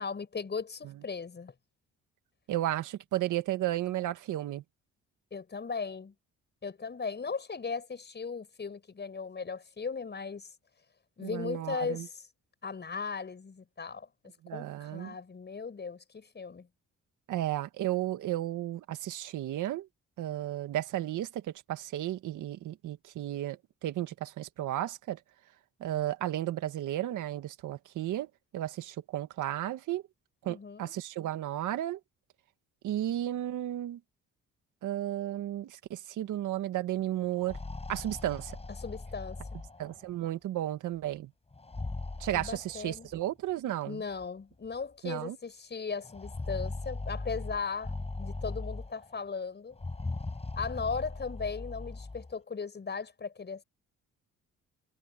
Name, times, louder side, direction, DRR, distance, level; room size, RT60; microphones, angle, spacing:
voice 1, 0.0-1.5 5.3-6.1 6.6-10.5 11.2-12.2 12.6-14.1 14.5-16.7 30.4-30.9 38.8-39.6 42.3-43.1 43.9-49.8 50.5-53.6, left 5 dB, 35° left, 6.2 m, -37 dB
voice 2, 2.5-4.6 11.2-12.1 14.4-15.1 17.3-19.9 20.2-25.2 25.8-30.0 30.4-32.0 32.8-34.0 34.8-37.6 37.9-38.6 39.8-41.3 42.2-44.0 45.0-45.4, right 13 dB, 80° right, 1.9 m, -33 dB
sound 1, 37.3-40.2 41.5-43.2 44.2-44.3 44.7-44.8 46.0-49.2 49.7-52.3, left 3 dB, 20° left, 6.3 m, -39 dB
cardioid pair, 90°, 30 cm